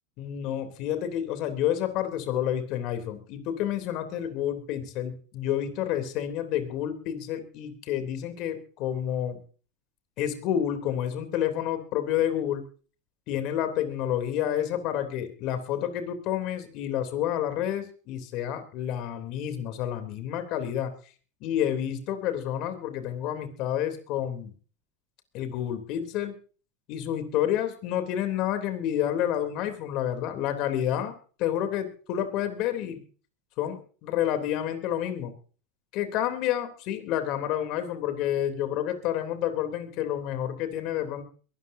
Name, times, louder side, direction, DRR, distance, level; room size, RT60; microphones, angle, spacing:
voice 1, 0.2-9.4 10.2-12.6 13.3-20.9 21.4-24.5 25.3-26.3 26.9-31.1 31.4-33.0 33.6-35.3 35.9-41.2, left 10 dB, 55° left, 8 dB, 3.3 m, -29 dB
23.0 x 13.5 x 2.8 m, 0.39 s
supercardioid pair, 115°, 0 cm